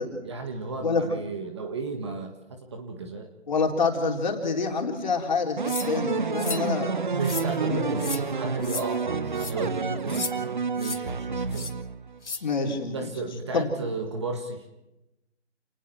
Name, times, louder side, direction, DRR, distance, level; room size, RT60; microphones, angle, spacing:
voice 1, 0.2-3.3 7.1-11.7 12.3-14.6, right 3 dB, 25° right, 5 dB, 1.7 m, -34 dB
voice 2, 3.5-6.9 7.7-7.9 12.4-13.1 13.5-13.7, left 4 dB, 40° left, 2 dB, 4.1 m, -27 dB
sound 1, 5.6-12.2, right 5 dB, 45° right, 0.8 m, -29 dB
sound 2, 5.7-5.9 6.4-6.7 7.2-7.5 8.0-8.2 8.6-8.8 9.4-9.5 10.1-10.3 10.8-11.0 11.5-11.7 12.2-12.4, left 4 dB, 75° left, 2.3 m, -33 dB
29.5 x 20.0 x 4.6 m, 0.90 s
figure-of-eight pair, 160°, 35 cm